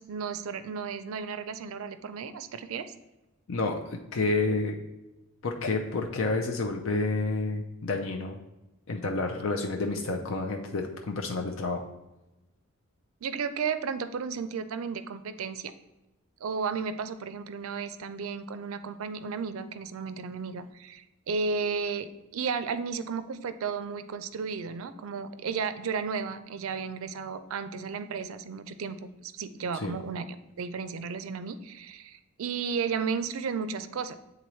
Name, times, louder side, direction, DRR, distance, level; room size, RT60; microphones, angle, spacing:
voice 1, 0.0-2.9 13.2-15.7 16.4-29.0 29.2-34.2, right 5 dB, 75° right, 12 dB, 0.4 m, -33 dB
voice 2, 3.5-4.7 5.4-8.4 8.9-11.8 29.7-30.0, left 3 dB, 65° left, 2 dB, 0.5 m, -29 dB
8.3 x 3.8 x 3.1 m, 1.0 s
head